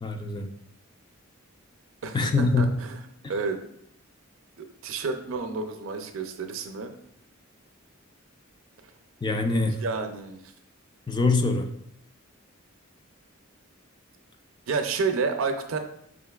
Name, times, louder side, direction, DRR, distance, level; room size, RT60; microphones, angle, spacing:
voice 1, 0.0-0.5 2.1-2.8 9.2-9.8 11.1-11.7, left 3 dB, 20° left, 5 dB, 0.3 m, -24 dB
voice 2, 2.0-3.0 3.3-3.6 4.6-6.9 9.8-10.4 14.7-15.8, right 4 dB, 70° right, 6 dB, 0.5 m, -30 dB
5.1 x 3.6 x 2.3 m, 0.72 s
head